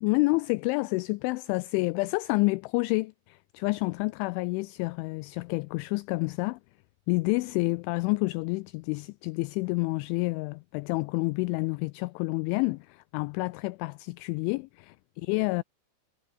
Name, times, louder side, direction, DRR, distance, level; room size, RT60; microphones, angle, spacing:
voice 1, 0.0-6.6 7.1-15.0 15.2-15.6, left 25 dB, 85° left, 2.8 m, -29 dB
omnidirectional pair, 5.8 m